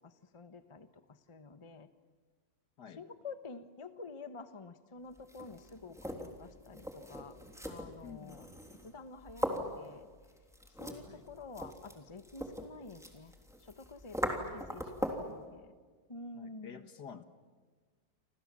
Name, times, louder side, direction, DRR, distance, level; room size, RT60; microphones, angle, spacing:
voice 1, 0.0-1.9 3.0-7.4 7.7-8.5 8.8-10.1 10.8-13.3 13.6-15.8 16.1-16.9, left 3 dB, 20° left, 10 dB, 1.0 m, -49 dB
sound 1, 5.2-15.4, equal, ahead, 3.3 m, -41 dB
voice 2, 8.0-8.5 11.0-11.3 14.3-14.4 16.4-17.2, left 7 dB, 60° left, 9 dB, 2.0 m, -50 dB
30.0 x 26.0 x 7.6 m, 1.5 s
omnidirectional pair, 2.0 m